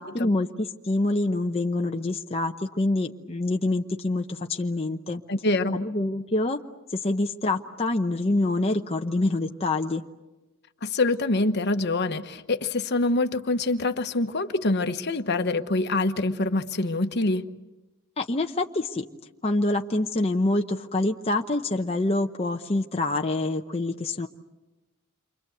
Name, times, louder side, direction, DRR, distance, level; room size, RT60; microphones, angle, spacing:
voice 1, 0.0-5.2 5.7-6.6 6.9-10.0 18.2-19.0 19.4-24.3, left 2 dB, 30° left, 2 dB, 0.9 m, -26 dB
voice 2, 5.3-5.8 10.8-17.5, left 2 dB, 55° left, 8 dB, 1.2 m, -25 dB
29.0 x 25.0 x 8.0 m, 1.1 s
head